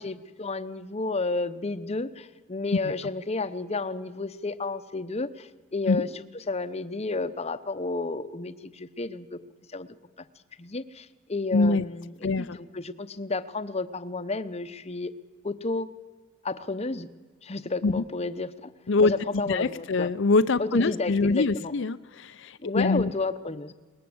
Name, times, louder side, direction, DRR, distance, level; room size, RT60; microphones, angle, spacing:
voice 1, 0.0-6.1 6.5-9.4 9.7-9.9 10.2-10.3 10.6-15.1 15.4-15.9 16.4-17.1 17.4-18.7 19.0-20.1 20.6-21.7 22.6-23.7, left 3 dB, 30° left, 12 dB, 0.9 m, -31 dB
voice 2, 11.5-11.8 12.2-12.6 17.8-18.0 18.9-19.1 19.5-23.1, left 3 dB, 65° left, 13 dB, 0.6 m, -24 dB
21.5 x 19.5 x 7.9 m, 1.3 s
head